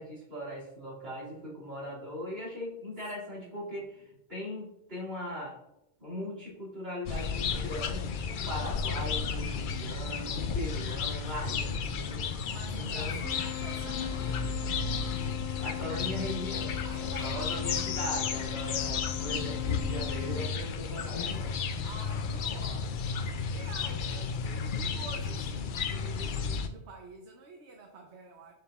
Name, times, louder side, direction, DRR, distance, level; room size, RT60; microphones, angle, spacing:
voice 1, 0.0-5.6 6.0-8.1 8.5-12.3 12.7-13.2 15.6-21.6, equal, 60° right, -5 dB, 2.8 m, -39 dB
voice 2, 3.4-3.8 12.3-14.5 16.8-17.9 21.6-28.5, right 4 dB, 80° right, 2 dB, 1.1 m, -48 dB
sound 1, 7.1-26.7, left 5 dB, 60° left, 0.6 m, -33 dB
Bird vocalization bird call bird song, 10.4-11.6 12.9-14.1 15.5-16.6 17.9-19.1, left 2 dB, 40° left, 2.5 m, -55 dB
sound 2, 13.2-20.4, left 14 dB, 15° left, 0.7 m, -40 dB
7.6 x 5.5 x 2.4 m, 0.86 s
omnidirectional pair, 1.1 m